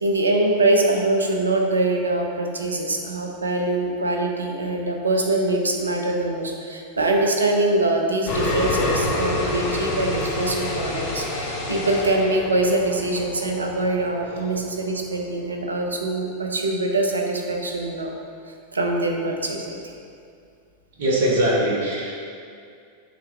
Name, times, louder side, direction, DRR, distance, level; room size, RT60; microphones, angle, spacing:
voice 1, 0.0-18.1 18.7-19.8, right 2 dB, 75° right, 1 dB, 0.7 m, -23 dB
sound 1, 8.2-15.1, left 2 dB, 45° left, 1.4 m, -28 dB
voice 2, 21.0-22.2, right 1 dB, 55° right, -3 dB, 1.1 m, -22 dB
7.5 x 3.1 x 4.3 m, 2.3 s
figure-of-eight pair, 90°, 0 cm